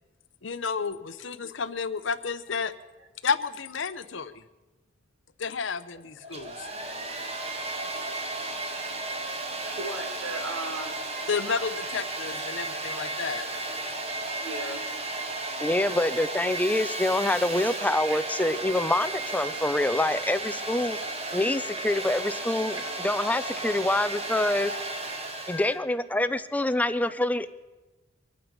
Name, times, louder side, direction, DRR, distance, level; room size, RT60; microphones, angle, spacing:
voice 1, 0.4-2.7 3.2-4.4 5.4-6.7 11.3-13.4, left 5 dB, 65° left, 12 dB, 0.7 m, -31 dB
Domestic sounds home sounds, 6.2-25.8, right 2 dB, 30° right, 1.3 m, -34 dB
voice 2, 9.8-11.0 14.4-14.9 18.0-18.2 22.9-23.0 24.4-25.8, right 1 dB, 90° right, 3 dB, 2.3 m, -38 dB
voice 3, 15.6-21.0 21.3-22.8 23.0-24.7 25.5-27.5, left 1 dB, 10° left, 13 dB, 0.4 m, -26 dB
24.0 x 8.8 x 5.3 m, 1.1 s
head